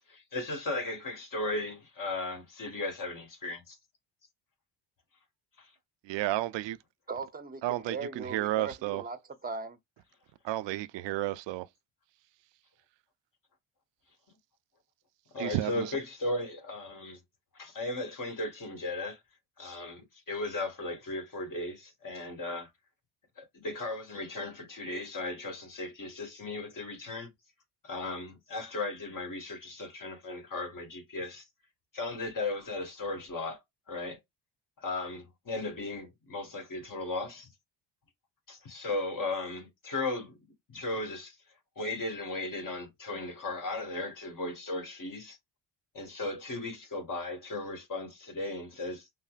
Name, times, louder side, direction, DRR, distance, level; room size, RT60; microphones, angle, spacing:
voice 1, 0.3-3.8 5.6-5.7 14.3-14.4 15.3-17.2 17.5-19.2 19.6-22.7 23.4-27.3 27.8-31.5 31.9-34.2 34.8-37.5 38.5-40.4 40.7-41.4 41.8-45.4 45.9-49.1, left 2 dB, 45° left, 1.9 m, -36 dB
voice 2, 6.0-6.8 7.6-9.0 10.4-11.7 15.4-15.9, right 15 dB, 70° right, 0.6 m, -32 dB
voice 3, 7.1-9.8, right 4 dB, 20° right, 0.8 m, -39 dB
5.5 x 2.1 x 2.5 m
cardioid pair, 90°, 47 cm